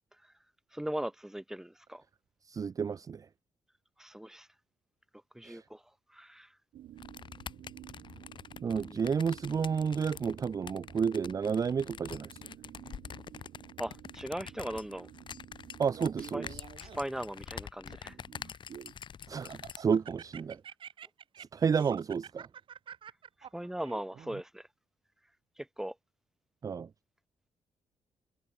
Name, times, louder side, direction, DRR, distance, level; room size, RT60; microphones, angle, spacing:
voice 1, 0.7-2.0 4.0-4.5 5.3-5.8 6.1-6.6 8.6-9.1 13.8-15.1 16.3-16.5 16.8-18.2 23.5-24.7 25.6-26.0, right 1 dB, 5° right, 2.5 m, -39 dB
voice 2, 2.5-3.3 5.4-5.6 8.6-12.3 15.8-16.5 19.3-20.6 21.4-22.5 26.6-26.9, right 6 dB, 35° right, 0.6 m, -31 dB
sound 1, 6.7-16.6, right 12 dB, 90° right, 3.7 m, -52 dB
sound 2, 7.0-19.8, left 7 dB, 50° left, 7.2 m, -46 dB
Laughter, 15.9-17.2 17.9-18.9 19.4-24.4, right 8 dB, 55° right, 5.2 m, -48 dB
cardioid pair, 115°, 10 cm